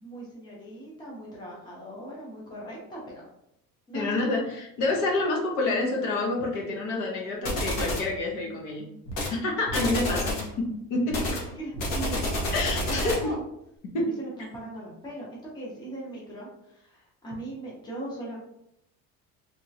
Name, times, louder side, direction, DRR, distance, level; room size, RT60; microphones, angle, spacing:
voice 1, 0.0-3.3 3.9-4.2 11.2-13.4 14.0-18.4, right 1 dB, 15° left, -4 dB, 0.7 m, -39 dB
voice 2, 3.9-8.9 9.3-11.3 12.5-13.3 13.8-14.1, left 2 dB, 65° left, 0 dB, 1.0 m, -28 dB
sound 1, 7.4-8.1 9.1-9.4 9.7-10.5 11.1-13.3, left 1 dB, 80° left, 1.3 m, -29 dB
3.5 x 3.0 x 2.7 m, 0.78 s
cardioid pair, 180°, 33 cm